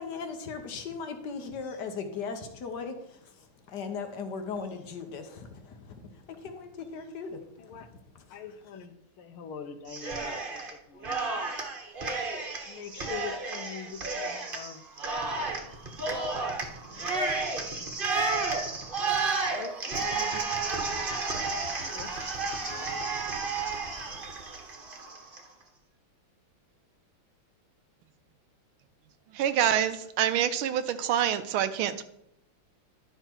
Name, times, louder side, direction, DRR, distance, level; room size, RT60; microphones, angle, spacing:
voice 1, 0.0-7.7 8.1-8.4, left 5 dB, 60° left, 6 dB, 1.5 m, -38 dB
voice 2, 8.3-11.7 12.7-15.3 16.0-17.2 17.5-17.9 19.1-21.1 21.7-22.1 22.6-23.7 24.1-24.2, left 7 dB, 85° left, 9 dB, 1.7 m, -45 dB
Cheering, 9.9-10.7 11.0-25.4, right 3 dB, 30° right, 1.1 m, -32 dB
voice 3, 29.3-32.0, right 10 dB, 90° right, 11 dB, 1.6 m, -26 dB
11.5 x 5.7 x 4.5 m, 0.78 s
omnidirectional pair, 2.3 m